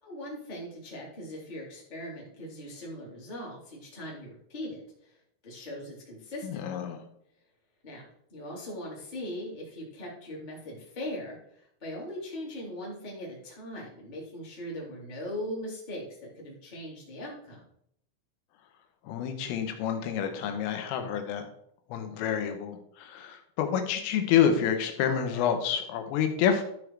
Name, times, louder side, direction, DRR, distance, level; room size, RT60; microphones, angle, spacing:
voice 1, 0.0-5.1 5.4-6.6 7.8-8.0 8.3-17.6, left 1 dB, 15° left, -4 dB, 2.1 m, -40 dB
voice 2, 6.4-7.0 19.1-21.5 21.9-26.6, left 8 dB, 85° left, 6 dB, 3.6 m, -28 dB
13.0 x 5.1 x 4.7 m, 0.70 s
omnidirectional pair, 5.9 m